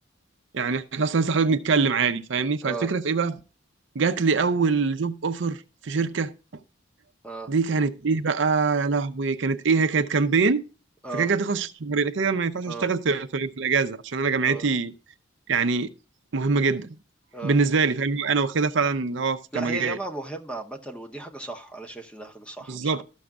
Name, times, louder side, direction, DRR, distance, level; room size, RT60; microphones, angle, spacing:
voice 1, 0.5-3.3 4.0-6.3 7.5-10.6 11.1-14.9 15.5-15.9 16.3-16.9 17.4-20.0 22.7-23.0, right 4 dB, 65° right, 0.5 m, -24 dB
voice 2, 2.6-2.9 7.2-7.5 11.0-11.3 12.7-12.9 14.4-14.7 17.3-17.6 19.5-23.0, right 2 dB, 5° left, 0.9 m, -36 dB
13.0 x 6.3 x 2.3 m
head